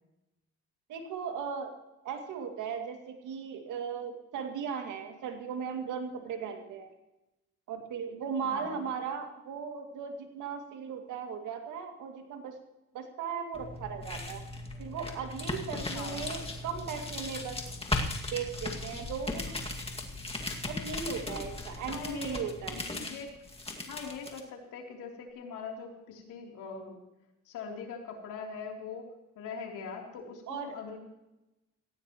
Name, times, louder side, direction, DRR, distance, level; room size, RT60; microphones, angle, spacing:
voice 1, 0.9-1.7 2.0-6.9 7.7-12.6 12.9-14.4 14.8-17.6 18.3-19.5 20.7-22.8 30.5-30.8, right 6 dB, 85° right, 4 dB, 2.4 m, -37 dB
voice 2, 8.4-8.8 15.9-16.3 21.9-22.4 22.7-23.3 23.9-27.0 27.4-29.1 29.3-31.0, left 5 dB, 85° left, 0 dB, 3.4 m, -42 dB
sound 1, 13.5-24.4, left 2 dB, 20° left, 2.1 m, -37 dB
18.0 x 15.5 x 3.0 m, 0.97 s
cardioid pair, 90°, 30 cm